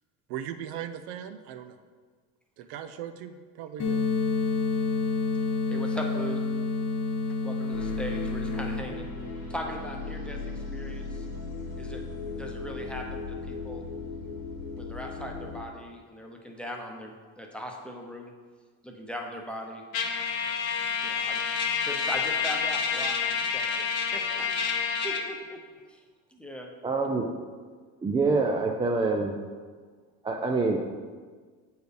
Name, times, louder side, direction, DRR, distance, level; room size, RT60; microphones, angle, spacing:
voice 1, 0.3-1.8 2.6-4.0, right 9 dB, 65° right, 9 dB, 0.6 m, -38 dB
sound 1, 3.8-8.8, left 4 dB, 40° left, 0.9 m, -28 dB
voice 2, 5.7-6.4 7.4-9.1 9.5-10.4 10.7-11.3 11.7-12.0 12.4-13.8 14.8-18.3 18.8-19.8 21.0-21.4 21.8-23.9 24.1-24.5 25.0-25.6 25.9-26.0 26.3-26.7, equal, 5° left, 0 dB, 0.8 m, -39 dB
sound 2, 7.7-15.6, left 3 dB, 60° left, 1.3 m, -37 dB
Trumpet, 19.9-25.3, left 6 dB, 90° left, 0.8 m, -28 dB
voice 3, 26.8-27.3 28.0-29.3 30.2-30.8, right 3 dB, 15° right, 2 dB, 0.3 m, -25 dB
7.8 x 4.6 x 3.4 m, 1.5 s
supercardioid pair, 100°, 41 cm